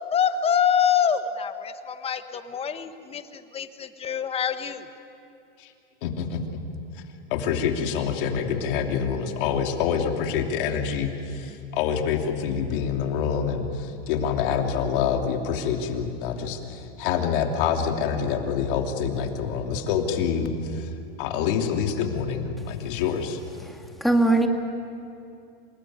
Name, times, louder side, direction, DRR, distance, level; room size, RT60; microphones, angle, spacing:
voice 1, 0.1-4.9, left 8 dB, 20° left, 10 dB, 1.3 m, -25 dB
voice 2, 6.0-6.4 6.9-7.0 7.3-20.9 21.2-23.4, left 7 dB, 60° left, 3 dB, 3.0 m, -26 dB
voice 3, 23.7-24.5, right 2 dB, ahead, 3 dB, 2.1 m, -21 dB
27.5 x 19.0 x 9.5 m, 2.6 s
supercardioid pair, 130°, 30 cm